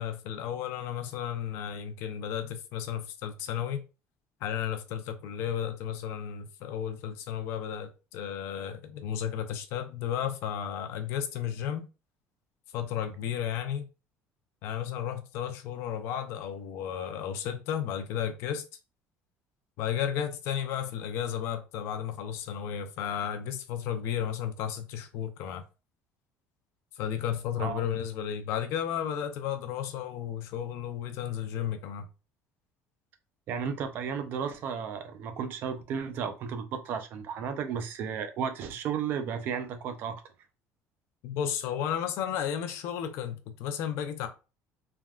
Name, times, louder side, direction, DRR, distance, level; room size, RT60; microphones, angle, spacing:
voice 1, 0.0-3.8 4.4-11.9 12.7-13.9 14.6-18.6 19.8-25.6 27.0-32.1 41.2-44.3, left 9 dB, 60° left, 0.4 m, -33 dB
voice 2, 33.5-40.2, right 7 dB, 45° right, 0.4 m, -33 dB
3.3 x 2.2 x 2.3 m
cardioid pair, 175°, 5 cm